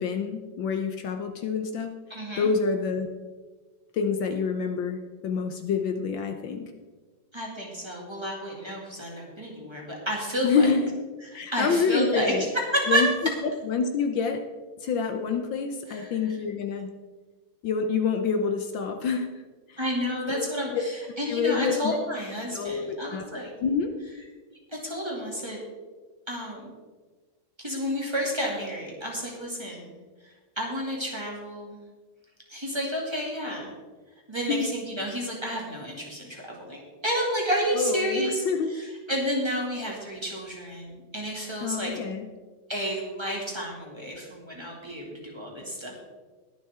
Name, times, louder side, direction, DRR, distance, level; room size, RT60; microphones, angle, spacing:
voice 1, 0.0-1.9 2.4-3.1 3.9-6.7 10.4-10.9 11.3-12.5 12.9-13.1 13.7-14.4 14.8-16.9 17.6-19.3 19.7-19.8 20.3-20.8 21.3-22.0 22.5-23.2 23.6-23.9 34.5-34.7 37.8-38.7 41.6-42.3, left 5 dB, 70° left, 6 dB, 1.5 m, -27 dB
voice 2, 2.1-2.5 7.3-10.7 11.3-12.3 12.7-13.0 15.9-16.1 19.8-23.5 24.7-25.6 26.3-26.7 27.6-29.9 30.6-31.8 32.5-33.7 34.3-38.4 38.7-41.9 42.7-46.0, equal, 15° right, -3 dB, 2.5 m, -30 dB
21.5 x 7.5 x 3.7 m, 1.4 s
omnidirectional pair, 2.2 m